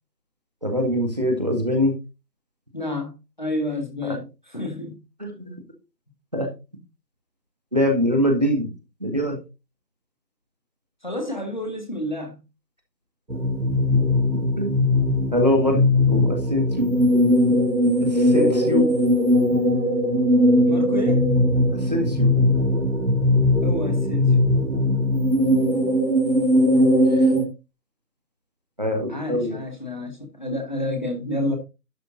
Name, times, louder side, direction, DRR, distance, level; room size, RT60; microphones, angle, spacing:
voice 1, 0.6-1.9 4.0-4.2 5.2-5.6 6.3-6.5 7.7-8.7 9.0-9.4 14.6-14.8 15.3-15.8 16.1-16.9 18.0-18.9 21.7-22.4 27.1-27.3 28.8-29.6, left 1 dB, 25° right, 1.8 m, -23 dB
voice 2, 2.7-3.1 3.4-5.0 11.0-12.4 20.7-21.3 23.6-24.3 29.1-31.6, left 1 dB, 25° left, 1.8 m, -29 dB
sound 1, 13.3-27.4, left 1 dB, 85° right, 3.1 m, -19 dB
11.5 x 6.7 x 3.8 m
figure-of-eight pair, 175°, 50 cm